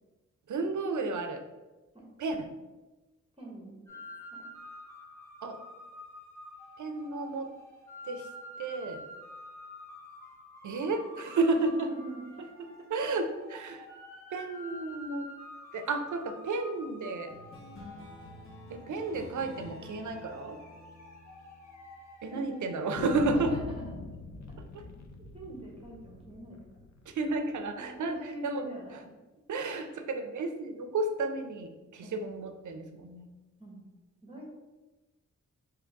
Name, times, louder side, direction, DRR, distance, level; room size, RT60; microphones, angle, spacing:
voice 1, 0.5-1.4 2.2-2.5 5.4-5.6 6.8-7.5 8.1-8.3 8.6-9.0 10.6-11.9 12.9-13.9 14.3-15.3 15.7-17.3 18.7-20.6 22.2-23.5 24.6-24.8 27.1-29.0 29.5-33.3, right 3 dB, 85° right, 7 dB, 0.6 m, -32 dB
voice 2, 3.4-4.0 4.3-4.4 11.7-12.4 22.3-22.9 23.3-23.6 25.3-26.8 27.8-29.0 32.0-32.2 33.6-33.8 34.2-34.4, right 1 dB, 20° right, -3 dB, 1.0 m, -45 dB
sound 1, 3.9-23.6, left 1 dB, 10° left, 0.9 m, -49 dB
sound 2, 17.3-22.2, left 2 dB, 45° left, 1.0 m, -50 dB
sound 3, 20.1-20.3 20.6-20.7 21.0-21.1 21.7-22.3 23.0-27.8, left 4 dB, 65° left, 0.6 m, -42 dB
3.8 x 2.9 x 4.6 m, 1.1 s
wide cardioid pair, 160°, 29 cm